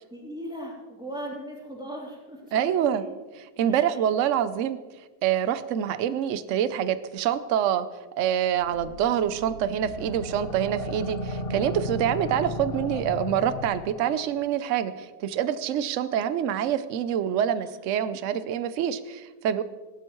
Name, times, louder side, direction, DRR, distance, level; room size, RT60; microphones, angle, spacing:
voice 1, 0.1-3.0 3.7-3.9 17.6-17.7, equal, 5° right, -4 dB, 3.2 m, -38 dB
voice 2, 2.5-3.0 3.6-4.8 5.2-7.9 8.2-19.6, right 9 dB, 60° right, 13 dB, 0.8 m, -26 dB
sound 1, 8.6-14.2, left 1 dB, 45° left, 0.9 m, -35 dB
17.5 x 12.0 x 3.1 m, 1.3 s
omnidirectional pair, 1.8 m